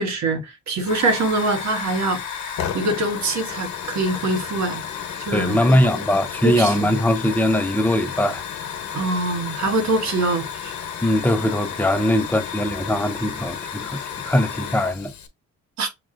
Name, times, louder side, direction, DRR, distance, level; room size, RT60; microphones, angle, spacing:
voice 1, 0.0-4.8 5.2-6.0 6.4-6.9 8.9-10.7 15.8-15.9, right 2 dB, 65° right, 1.2 m, -24 dB
Hiss / Fire, 0.8-15.3, left 8 dB, 70° left, 0.9 m, -32 dB
voice 2, 5.3-8.4 11.0-14.0 14.2-15.1, left 1 dB, 5° left, 0.6 m, -21 dB
6.1 x 2.3 x 2.5 m
cardioid pair, 90°, 30 cm